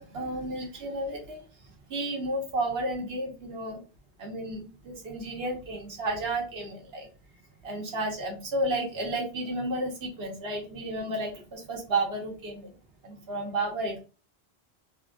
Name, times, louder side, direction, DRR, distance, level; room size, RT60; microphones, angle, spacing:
voice 1, 0.0-3.8 4.2-7.1 7.6-12.7 13.0-14.0, right 2 dB, 65° right, 0 dB, 1.4 m, -32 dB
3.5 x 2.5 x 3.7 m, 0.34 s
omnidirectional pair, 1.1 m